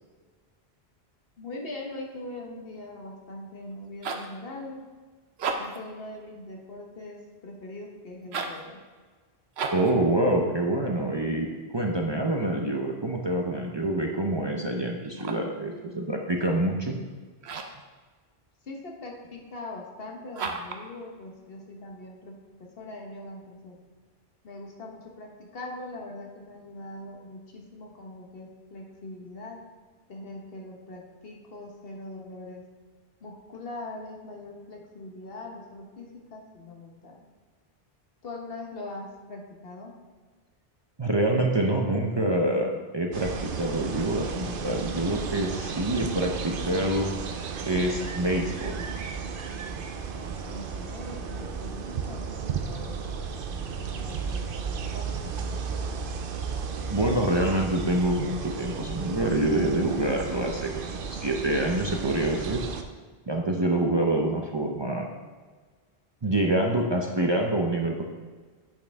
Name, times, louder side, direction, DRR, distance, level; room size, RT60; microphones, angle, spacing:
voice 1, 1.4-4.9 5.6-8.8 18.6-22.4 22.8-23.8 24.4-29.6 30.1-32.6 33.2-37.3 38.2-39.9 50.5-55.8, left 2 dB, 65° left, 0 dB, 1.3 m, -42 dB
sound 1, 3.7-4.4 5.3-5.9 8.2-8.7 9.5-10.0 15.0-15.6 17.4-17.9 20.3-20.9, right 4 dB, 85° right, 1.0 m, -33 dB
voice 2, 9.7-11.5 11.7-16.9 41.0-47.1 47.7-48.8 56.9-62.7 63.3-65.1 66.2-68.0, right 1 dB, 30° right, 0 dB, 0.6 m, -26 dB
sound 2, 43.1-62.8, right 5 dB, 60° right, 0.8 m, -34 dB
8.7 x 6.4 x 3.5 m, 1.4 s
omnidirectional pair, 1.0 m